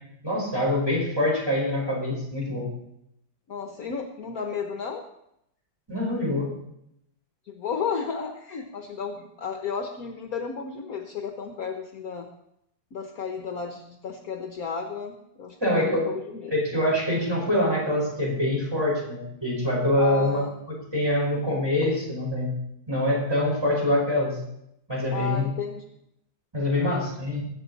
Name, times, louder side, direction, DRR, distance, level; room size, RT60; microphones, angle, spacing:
voice 1, 0.2-2.7 5.9-6.5 15.6-16.1 16.5-22.6 22.9-24.4 24.9-25.5 26.5-27.4, left 1 dB, 15° right, -4 dB, 5.0 m, -25 dB
voice 2, 3.5-5.1 7.5-12.3 12.9-16.5 20.0-20.5 25.1-25.8 26.7-27.1, left 6 dB, 55° left, 4 dB, 1.4 m, -33 dB
21.0 x 8.2 x 4.1 m, 0.78 s
omnidirectional pair, 2.0 m